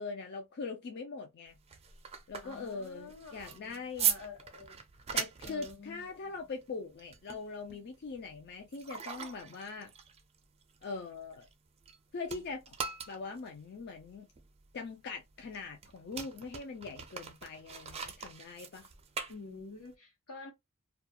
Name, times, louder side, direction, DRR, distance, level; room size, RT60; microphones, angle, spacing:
voice 1, 0.0-1.6 2.3-4.1 5.1-9.9 10.8-11.5 12.1-12.7 13.1-14.3 14.7-18.9, left 4 dB, 50° left, 0.4 m, -42 dB
sound 1, 1.5-12.0 12.2-19.9, right 7 dB, 30° right, 0.4 m, -40 dB
voice 2, 2.4-4.8 5.4-6.5 19.3-20.5, left 4 dB, 80° left, 1.0 m, -49 dB
2.3 x 2.2 x 2.7 m
head